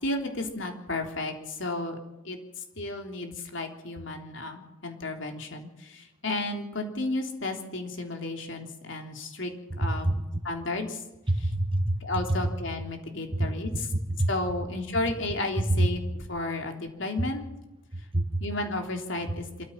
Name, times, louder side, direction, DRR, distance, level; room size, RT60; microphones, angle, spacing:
voice 1, 0.0-2.0 2.2-2.4 2.8-9.5 9.8-10.2 10.4-11.0 12.0-13.9 14.3-16.0 16.3-17.4 18.4-19.6, left 2 dB, 60° left, 3 dB, 3.4 m, -33 dB
voice 2, 9.7-10.2 11.3-12.0 13.3-13.5 14.2-14.3 15.7-15.9 17.9-18.4, right 1 dB, 25° right, 6 dB, 1.7 m, -26 dB
26.0 x 14.5 x 7.4 m, 0.99 s
head